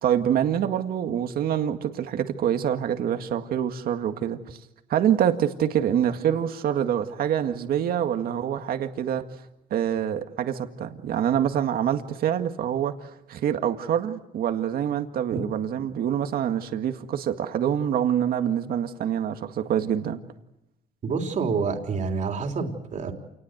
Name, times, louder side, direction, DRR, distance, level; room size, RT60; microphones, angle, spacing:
voice 1, 0.0-4.6 4.9-9.2 9.7-20.2, right 9 dB, 65° right, 7 dB, 1.9 m, -26 dB
voice 2, 21.0-23.1, right 5 dB, 50° right, 3 dB, 3.6 m, -27 dB
28.0 x 19.5 x 8.1 m, 0.90 s
cardioid pair, 110°, 17 cm